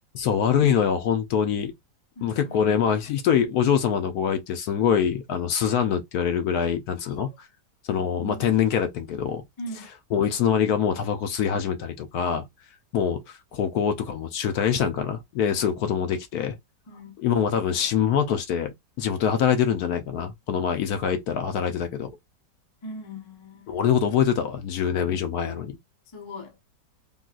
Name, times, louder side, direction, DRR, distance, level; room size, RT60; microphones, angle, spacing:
voice 1, 0.1-1.7 2.2-7.3 7.8-9.4 10.1-12.4 12.9-16.6 17.2-22.1 23.7-25.8, left 8 dB, 70° left, 1.0 m, -24 dB
voice 2, 2.2-2.8 7.0-7.3 8.2-8.4 9.6-9.9 16.9-17.2 22.8-23.8 26.1-26.6, equal, 30° left, 0.5 m, -39 dB
3.8 x 2.3 x 2.4 m
omnidirectional pair, 1.8 m